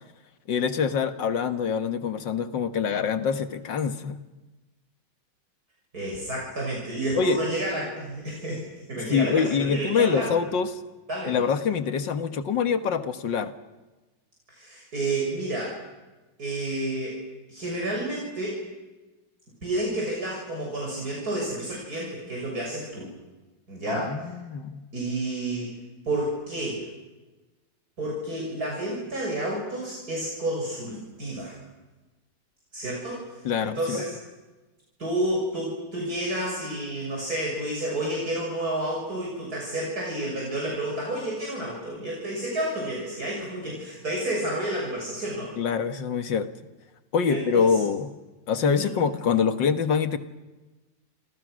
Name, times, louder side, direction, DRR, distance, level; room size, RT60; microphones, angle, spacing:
voice 1, 0.5-4.2 7.2-7.4 9.1-10.8 11.3-13.5 23.9-24.8 33.4-34.0 45.6-46.5 47.1-48.1 48.5-50.2, left 6 dB, 80° left, 10 dB, 2.1 m, -25 dB
voice 2, 5.9-8.6 8.9-10.3 11.1-11.5 14.5-15.8 16.4-17.2 17.5-18.6 19.6-23.1 23.7-24.3 24.9-25.7 26.1-26.8 28.0-31.6 32.7-34.1 35.0-45.5 47.3-47.8 48.6-48.9, right 1 dB, 55° right, -3 dB, 7.1 m, -30 dB
30.0 x 28.0 x 6.4 m, 1.1 s
omnidirectional pair, 1.9 m